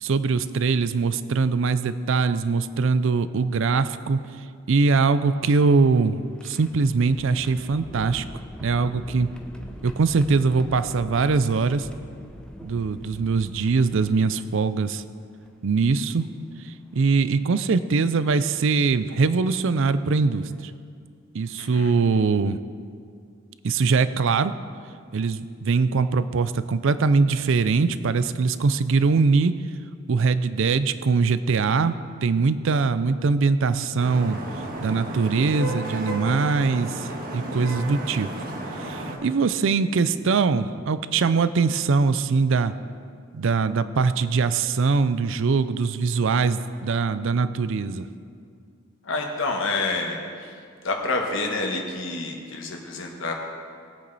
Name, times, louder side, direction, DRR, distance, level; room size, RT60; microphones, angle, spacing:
voice 1, 0.0-4.2 4.7-8.2 8.6-9.3 9.8-11.9 12.6-15.0 15.6-16.2 16.9-20.7 21.3-22.6 23.6-24.6 25.1-29.5 30.1-34.4 34.8-38.3 38.8-42.7 43.3-48.1, right 4 dB, 65° right, 14 dB, 0.5 m, -22 dB
sound 1, 5.3-14.6 15.4-15.5 17.0-17.2 18.0-18.2 19.8-19.9 20.3-20.5, equal, 5° left, 0.7 m, -43 dB
voice 2, 21.6-21.9 49.0-50.5 50.8-53.3, left 3 dB, 65° left, 1 dB, 1.3 m, -28 dB
Vehicle horn car horn honking / Traffic noise roadway noise, 34.0-39.2, right 1 dB, 45° right, 1.5 m, -33 dB
19.0 x 8.6 x 4.1 m, 2.2 s
head